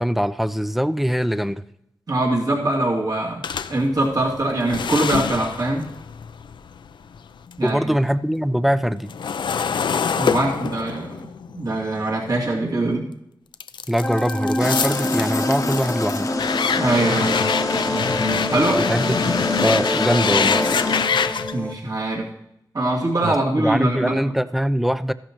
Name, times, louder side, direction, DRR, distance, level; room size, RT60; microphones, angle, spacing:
voice 1, 0.0-1.6 7.6-9.1 13.9-16.3 18.8-19.4 19.6-20.7 23.2-25.1, equal, ahead, 14 dB, 0.4 m, -22 dB
voice 2, 2.1-5.8 7.6-7.9 10.2-13.1 16.8-17.4 18.5-18.9 21.5-22.3 22.7-24.3, right 2 dB, 55° right, -3 dB, 2.5 m, -23 dB
sound 1, 3.4-7.7 8.0-13.0 13.5-21.5, left 6 dB, 90° left, 0.4 m, -26 dB
sound 2, 14.0-21.7, left 1 dB, 15° left, 1.1 m, -26 dB
sound 3, 14.6-21.0, left 3 dB, 45° left, 0.8 m, -27 dB
14.5 x 11.0 x 3.0 m, 0.79 s
wide cardioid pair, 110°, 8 cm